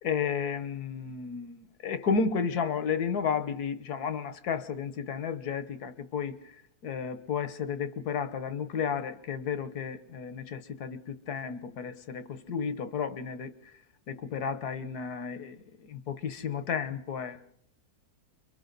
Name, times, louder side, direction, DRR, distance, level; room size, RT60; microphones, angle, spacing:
voice 1, 0.0-6.4 6.8-13.5 14.1-15.6 15.9-17.4, left 6 dB, 90° left, 1.6 m, -32 dB
29.5 x 23.5 x 4.0 m
omnidirectional pair, 1.6 m